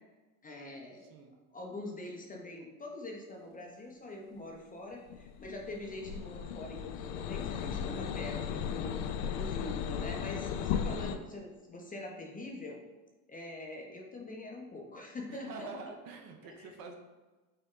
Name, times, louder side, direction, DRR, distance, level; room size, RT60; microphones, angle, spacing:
voice 1, 0.4-1.1 1.5-9.0 9.3-12.8 13.3-15.7 16.4-16.7, left 2 dB, 20° left, 0 dB, 0.6 m, -44 dB
voice 2, 1.0-1.3 15.3-16.9, right 4 dB, 50° right, 4 dB, 0.8 m, -46 dB
sound 1, 5.1-11.2, left 8 dB, 70° left, 0.5 m, -36 dB
5.4 x 2.1 x 3.7 m, 1.2 s
hypercardioid pair, 85°, 45 cm